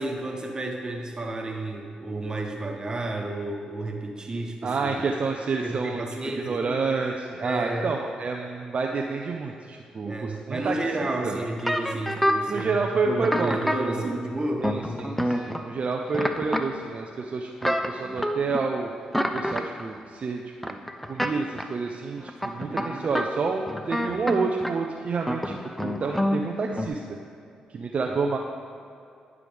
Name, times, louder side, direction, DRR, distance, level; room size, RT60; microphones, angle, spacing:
voice 1, 0.0-4.9 5.6-6.8 7.4-7.9 10.0-12.8 13.0-14.7 22.7-23.1 28.1-28.2, right 2 dB, 30° right, 2 dB, 1.2 m, -31 dB
voice 2, 4.6-6.0 6.4-11.4 12.5-13.6 13.8-14.1 14.6-18.9 19.3-20.8 21.1-27.0 27.7-28.4, right 4 dB, 50° right, 1 dB, 0.5 m, -29 dB
sound 1, 11.6-12.6 13.2-13.8 14.6-15.6 16.1-16.6 17.6-18.6 19.1-19.8 20.6-21.3 21.6-21.7 22.2-23.3 23.7-24.7 25.2-26.4 26.7-26.9, equal, 5° left, 0.6 m, -27 dB
10.5 x 4.8 x 3.5 m, 2.5 s
supercardioid pair, 50°, 3 cm